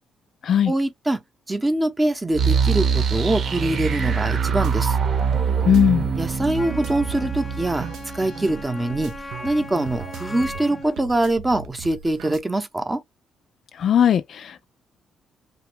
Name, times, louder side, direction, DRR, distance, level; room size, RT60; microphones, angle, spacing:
voice 1, 0.7-1.2 1.5-5.0 6.2-9.1 9.4-13.0, right 1 dB, 15° right, 0.7 m, -24 dB
sound 1, 2.3-9.1, right 6 dB, 55° right, 0.9 m, -24 dB
sound 2, 4.3-12.4, right 7 dB, 85° right, 0.5 m, -37 dB
voice 2, 5.6-6.1 13.8-14.6, left 9 dB, 60° left, 0.3 m, -18 dB
Wind instrument woodwind instrument, 6.5-11.0, left 1 dB, 25° left, 0.7 m, -38 dB
2.9 x 2.3 x 3.3 m
cardioid pair, 90°, 0 cm